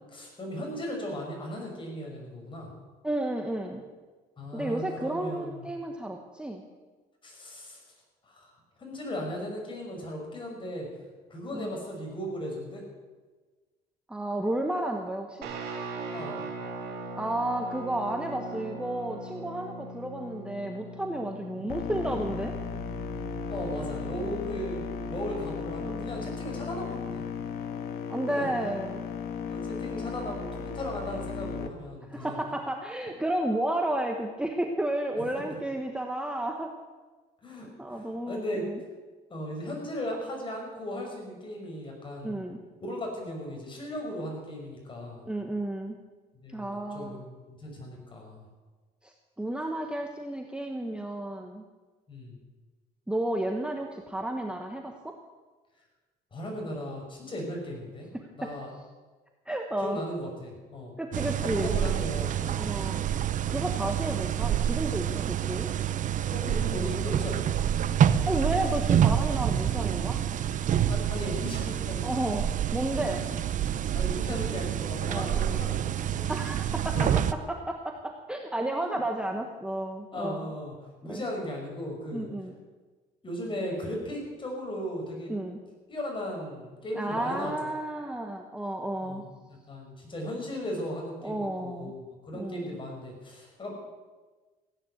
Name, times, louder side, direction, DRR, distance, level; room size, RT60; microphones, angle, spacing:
voice 1, 0.1-2.7 4.4-5.7 7.2-7.8 8.2-8.5 8.8-10.9 11.3-12.8 16.1-16.5 21.5-21.7 23.5-27.2 28.3-28.5 29.5-32.4 35.2-35.3 37.4-38.7 39.3-42.4 42.8-45.2 46.4-48.5 52.1-52.4 56.3-58.1 58.3-58.7 59.8-60.9 61.4-62.7 66.3-67.6 70.9-72.2 73.2-73.4 73.9-75.8 76.1-76.4 76.9-77.2 78.8-79.0 80.1-82.3 83.2-85.3 85.9-87.5 89.0-93.7, equal, 30° left, 0 dB, 5.8 m, -37 dB
voice 2, 3.0-3.8 4.5-6.6 11.5-11.8 14.1-15.5 17.2-22.5 25.8-26.1 28.1-29.0 32.1-36.7 37.8-38.8 42.2-42.6 45.3-46.0 46.5-47.2 49.0-51.6 53.1-55.2 58.1-58.5 59.5-60.0 61.0-61.7 62.6-63.0 63.5-65.7 68.3-70.2 72.0-72.5 72.7-73.3 75.1-75.4 76.3-80.5 81.1-81.2 82.1-82.5 85.3-85.6 86.9-89.2 91.2-91.9 92.3-92.8, right 1 dB, 5° right, 3 dB, 1.2 m, -32 dB
Guitar, 15.4-24.5, right 2 dB, 75° right, 3.7 m, -40 dB
sound 1, 21.7-31.7, left 5 dB, 70° left, 1.5 m, -35 dB
sound 2, 61.1-77.3, right 10 dB, 50° right, 0.7 m, -27 dB
16.5 x 9.8 x 8.0 m, 1.3 s
cardioid pair, 110°, 17 cm